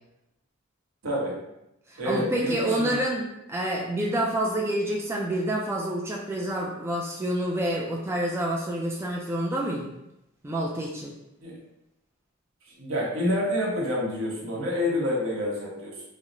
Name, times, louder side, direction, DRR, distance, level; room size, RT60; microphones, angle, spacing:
voice 1, 1.0-1.4 2.0-3.0 11.4-11.6 12.8-16.0, left 1 dB, 70° right, -4 dB, 1.0 m, -28 dB
voice 2, 1.9-9.9 10.4-11.1, right 1 dB, 10° right, -2 dB, 0.3 m, -28 dB
4.5 x 2.1 x 2.6 m, 0.86 s
head